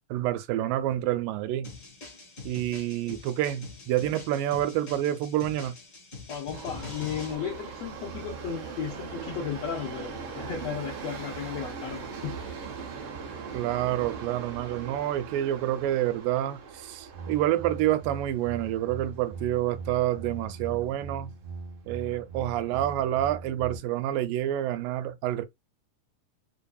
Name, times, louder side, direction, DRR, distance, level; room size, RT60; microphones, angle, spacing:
voice 1, 0.1-1.7 2.5-5.8 13.5-21.3 21.9-25.5, right 13 dB, 90° right, 2.3 m, -28 dB
sound 1, 1.6-7.3, left 3 dB, 40° left, 1.1 m, -44 dB
voice 2, 6.3-12.4, left 8 dB, 80° left, 1.5 m, -35 dB
Subway metro underground, 6.5-20.6 20.9-21.0 21.9-22.0 22.3-22.4 23.0-23.1, right 5 dB, 70° right, 1.4 m, -41 dB
sound 2, 17.1-23.8, right 4 dB, 20° right, 0.7 m, -40 dB
5.0 x 2.6 x 2.2 m
omnidirectional pair, 3.8 m